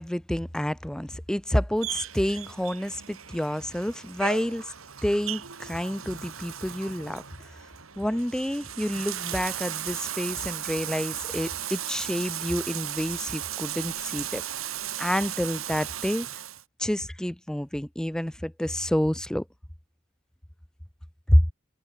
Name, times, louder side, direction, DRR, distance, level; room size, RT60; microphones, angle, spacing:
voice 1, 0.0-4.7 5.0-7.2 8.0-14.4 15.0-16.3 16.8-19.4 21.3-21.4, equal, 5° left, 0.4 m, -28 dB
Bathtub (filling or washing), 1.8-16.6, right 11 dB, 85° right, 3.0 m, -36 dB
head